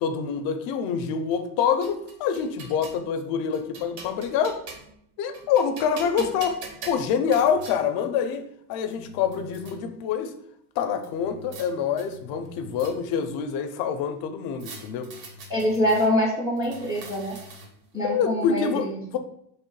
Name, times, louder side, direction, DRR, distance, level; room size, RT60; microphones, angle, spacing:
voice 1, 0.0-4.6 5.2-6.6 6.9-10.3 10.8-15.1 18.1-19.2, left 7 dB, 50° left, 8 dB, 0.5 m, -26 dB
sound 1, 1.3-3.0 3.5-5.0 5.3-7.8 8.5-8.6 8.9-9.7 11.0-11.7 12.0-13.2 14.6-16.1 16.6-17.9, right 2 dB, 85° right, 1.1 m, -43 dB
voice 2, 15.5-17.3 17.9-19.0, equal, 10° right, -4 dB, 0.3 m, -24 dB
3.1 x 2.8 x 4.5 m, 0.74 s
cardioid pair, 180°, 46 cm